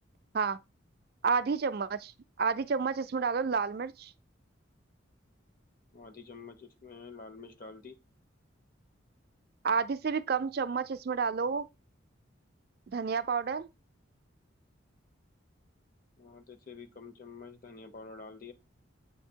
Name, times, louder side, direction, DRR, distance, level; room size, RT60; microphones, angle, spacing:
voice 1, 1.2-2.1 2.4-4.1 9.6-11.7 12.9-13.7, right 5 dB, 50° right, 0.4 m, -30 dB
voice 2, 5.9-8.0 16.2-18.5, left 4 dB, 45° left, 0.7 m, -48 dB
8.0 x 2.7 x 4.5 m
head